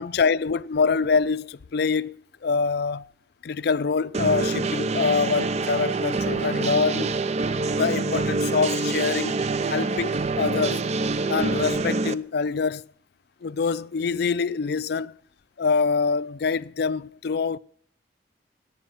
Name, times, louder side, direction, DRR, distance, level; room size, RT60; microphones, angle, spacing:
voice 1, 0.0-3.1 3.4-7.1 7.7-10.9 11.3-12.9 13.4-15.1 15.6-17.6, left 5 dB, 60° left, 0.4 m, -25 dB
sound 1, 4.1-12.1, right 3 dB, 35° right, 0.4 m, -26 dB
10.5 x 9.1 x 9.0 m
head